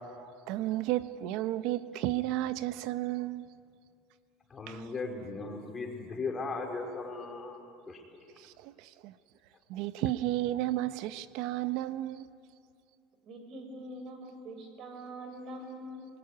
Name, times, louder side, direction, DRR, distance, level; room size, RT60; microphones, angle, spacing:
voice 1, 0.1-3.5 4.7-4.9 8.4-9.1 9.7-12.3, right 15 dB, 70° right, 0.9 m, -33 dB
voice 2, 4.5-7.6 7.9-8.0, left 3 dB, 20° left, 4.5 m, -37 dB
voice 3, 13.2-16.1, right 1 dB, 50° right, 5.5 m, -44 dB
24.5 x 21.0 x 9.6 m
cardioid pair, 130°, 0 cm